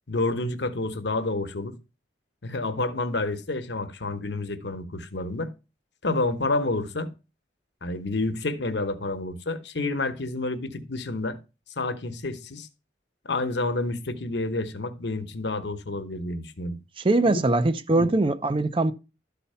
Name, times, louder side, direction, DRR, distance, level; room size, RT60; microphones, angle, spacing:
voice 1, 0.1-1.8 2.4-5.5 6.0-7.1 7.8-11.4 11.8-12.7 13.2-16.8 17.2-17.4 17.9-18.1, left 2 dB, 75° left, 1.0 m, -29 dB
voice 2, 17.0-18.9, right 2 dB, 30° right, 0.5 m, -22 dB
12.5 x 4.2 x 5.5 m
head